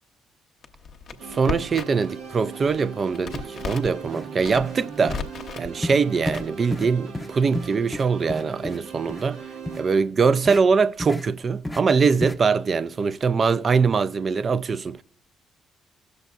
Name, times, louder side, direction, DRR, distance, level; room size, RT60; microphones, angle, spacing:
Crackle, 0.6-2.1 2.4-4.0 4.3-5.7 6.2-6.8, left 5 dB, 55° left, 0.7 m, -34 dB
sound 1, 1.2-10.0, right 6 dB, 75° right, 0.8 m, -39 dB
voice 1, 1.3-5.2 5.6-9.5 9.8-15.0, right 5 dB, 45° right, 0.3 m, -22 dB
sound 2, 3.6-3.7 4.0-4.3 4.5-4.8 5.0-5.2 5.8-6.0 6.3-6.4 6.7-6.9 7.1-7.3 7.5-8.8 9.1-9.2 9.6-9.8 10.4-10.6 11.0-11.2 11.6-11.8 12.2-12.4, left 1 dB, 10° left, 0.6 m, -31 dB
16.5 x 6.5 x 2.4 m
hypercardioid pair, 45°, 0 cm